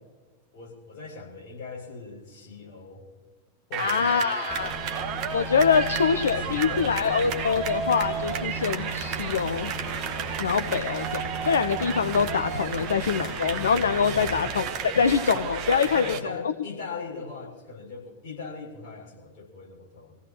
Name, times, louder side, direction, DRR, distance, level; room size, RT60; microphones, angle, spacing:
voice 1, 0.5-3.1 3.7-4.8 6.3-7.3 14.1-14.4 15.9-20.2, left 4 dB, 45° left, -2 dB, 7.3 m, -40 dB
sound 1, 3.7-16.2, right 7 dB, 40° right, 1.4 m, -33 dB
voice 2, 3.8-4.7 5.3-9.7 10.4-16.0, left 6 dB, 70° left, 9 dB, 0.6 m, -24 dB
sound 2, 4.5-15.8, right 1 dB, 25° left, 3.9 m, -36 dB
27.0 x 16.5 x 3.1 m, 1.2 s
figure-of-eight pair, 90°, 0 cm